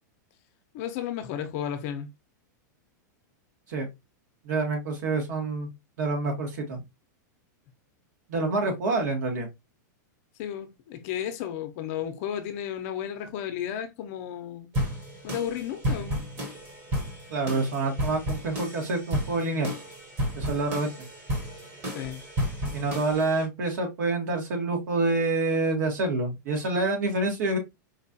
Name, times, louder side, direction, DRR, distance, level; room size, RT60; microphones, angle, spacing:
voice 1, 0.7-2.1 10.4-14.7 15.2-16.2 21.9-22.2, left 9 dB, 45° left, 0.6 m, -33 dB
voice 2, 4.4-5.7 6.0-6.8 8.3-9.5 17.3-19.7 20.3-20.9 22.7-27.6, right 3 dB, 65° right, 1.5 m, -27 dB
sound 1, 14.7-23.4, equal, 25° right, 1.0 m, -32 dB
4.4 x 2.4 x 2.7 m
supercardioid pair, 155°, 10 cm